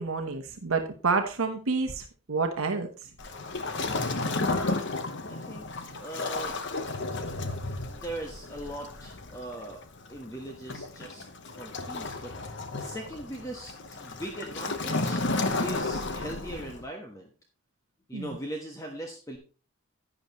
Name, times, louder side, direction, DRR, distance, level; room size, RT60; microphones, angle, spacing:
voice 1, 0.0-3.1 4.6-4.8 18.1-18.3, right 4 dB, 75° right, 4 dB, 1.0 m, -29 dB
Waves surf, 3.2-16.8, left 3 dB, 55° left, 1.0 m, -33 dB
voice 2, 5.3-6.6 7.9-9.8 10.1-15.3 15.6-17.3 18.1-19.4, right 1 dB, 15° left, 2 dB, 1.2 m, -40 dB
11.0 x 9.0 x 3.0 m, 0.35 s
head